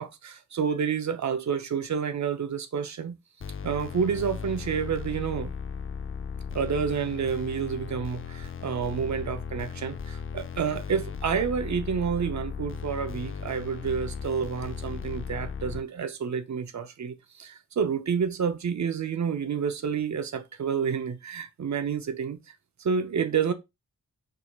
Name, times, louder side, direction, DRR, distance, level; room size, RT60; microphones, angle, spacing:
voice 1, 0.0-3.2 3.6-5.5 6.5-22.5 22.8-23.5, right 6 dB, 60° right, 0.7 m, -29 dB
sound 1, 3.4-15.8, left 6 dB, 40° left, 0.5 m, -36 dB
4.7 x 2.8 x 2.3 m
cardioid pair, 50°, 33 cm